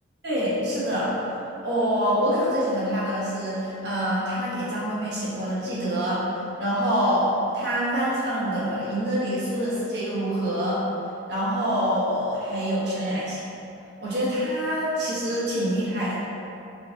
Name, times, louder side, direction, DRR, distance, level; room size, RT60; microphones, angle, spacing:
voice 1, 0.2-1.1 1.6-6.3 6.6-10.8 11.3-13.5 14.0-16.2, equal, 60° right, -8 dB, 1.1 m, -26 dB
3.8 x 2.5 x 3.7 m, 2.8 s
head